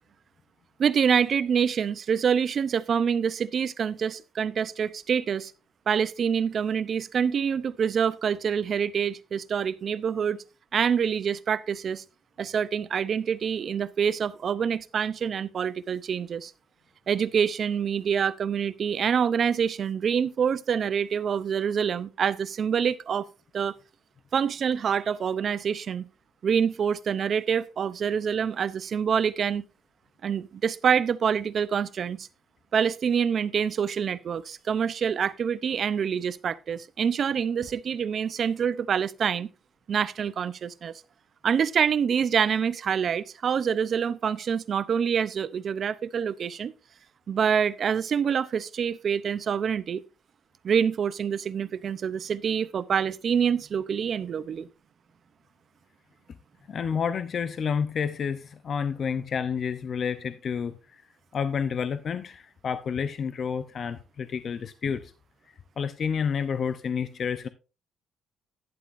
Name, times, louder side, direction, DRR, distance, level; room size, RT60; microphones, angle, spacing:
voice 1, 0.8-5.5 5.9-10.4 10.7-12.0 12.4-16.5 17.1-23.3 23.5-23.7 24.3-26.1 26.4-29.6 30.2-32.3 32.7-39.5 39.9-40.9 41.4-46.7 47.3-50.0 50.6-54.7, right 7 dB, 50° right, 0.6 m, -26 dB
voice 2, 56.7-60.7 61.3-65.1 65.8-67.5, left 6 dB, 50° left, 0.6 m, -29 dB
11.5 x 10.5 x 2.6 m
cardioid pair, 115°, 0 cm